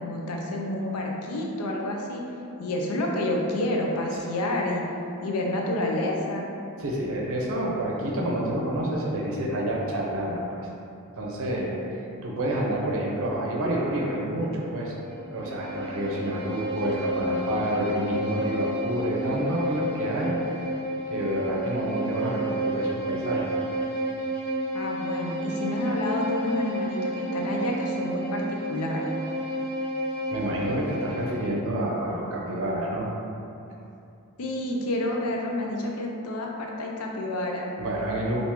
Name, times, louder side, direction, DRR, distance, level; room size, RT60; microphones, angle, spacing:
voice 1, 0.0-2.2 2.6-4.8 5.2-6.5 24.7-29.2 34.4-37.7, left 1 dB, 75° left, -1 dB, 0.5 m, -29 dB
voice 2, 6.8-10.7 11.1-14.9 15.3-20.4 21.1-23.4 30.3-33.1 37.8-38.4, right 1 dB, 65° right, -3 dB, 0.6 m, -28 dB
Bowed string instrument, 15.0-31.6, right 1 dB, 10° left, 1.0 m, -31 dB
3.4 x 2.5 x 2.9 m, 2.8 s
head